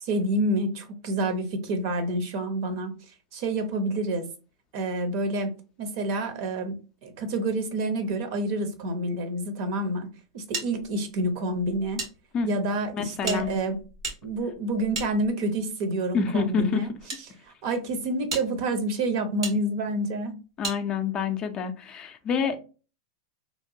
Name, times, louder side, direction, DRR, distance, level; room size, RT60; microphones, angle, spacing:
voice 1, 0.0-2.9 3.3-4.3 4.7-5.5 5.8-10.1 10.3-12.0 12.4-13.8 14.2-16.9 17.5-20.4, right 1 dB, 55° right, 0.7 m, -28 dB
sound 1, 10.5-12.1 12.4-12.5 13.2-15.7 16.5-17.2 17.8-17.9 18.3-18.5 19.4-19.6 20.6-20.8, right 3 dB, 90° right, 1.1 m, -35 dB
voice 2, 12.9-13.5 16.1-16.9 20.6-22.6, left 6 dB, 30° left, 0.4 m, -27 dB
2.9 x 2.1 x 2.6 m
hypercardioid pair, 120°, 3 cm